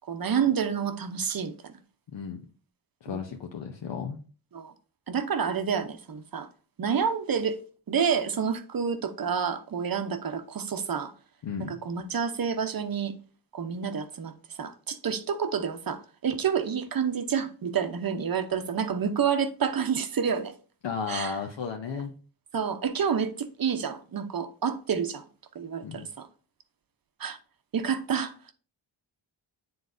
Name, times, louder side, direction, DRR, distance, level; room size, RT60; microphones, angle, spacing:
voice 1, 0.1-1.7 3.1-3.2 4.5-4.7 5.1-6.5 6.8-7.6 7.9-11.1 11.6-13.1 13.5-14.3 14.6-20.5 21.1-21.4 21.9-22.0 22.5-25.2 25.5-26.3 27.2-27.4 27.7-28.3, right 7 dB, 50° right, 0.8 m, -29 dB
voice 2, 3.0-4.2 11.4-11.8 20.8-22.1 25.8-26.1, left 6 dB, 70° left, 0.8 m, -34 dB
9.4 x 3.9 x 2.6 m
wide cardioid pair, 115°, 46 cm